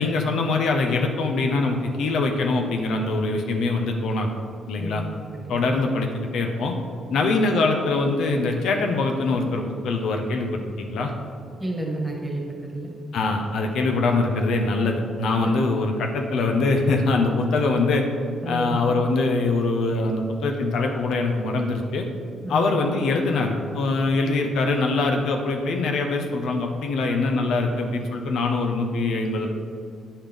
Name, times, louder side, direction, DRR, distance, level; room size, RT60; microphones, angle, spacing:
voice 1, 0.0-4.3 4.7-5.0 5.5-6.7 7.1-11.1 13.1-18.1 18.5-22.1 22.5-29.5, left 3 dB, 75° left, 3 dB, 0.8 m, -23 dB
voice 2, 5.3-5.7 11.6-12.9 18.4-18.8 22.4-22.8, right 1 dB, 10° right, -1 dB, 1.5 m, -30 dB
9.0 x 5.7 x 3.5 m, 2.1 s
cardioid pair, 120°, 0 cm